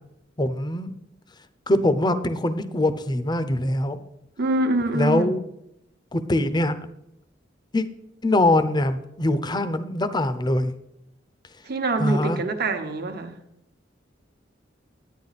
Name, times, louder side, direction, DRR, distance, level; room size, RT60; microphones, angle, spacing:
voice 1, 0.4-1.0 1.7-4.0 4.9-5.4 6.1-6.7 7.7-7.9 8.2-10.7 12.0-12.4, left 1 dB, 25° left, 0.6 m, -23 dB
voice 2, 4.4-5.3 11.7-13.3, right 2 dB, 55° right, 1.1 m, -25 dB
10.5 x 9.4 x 4.1 m
head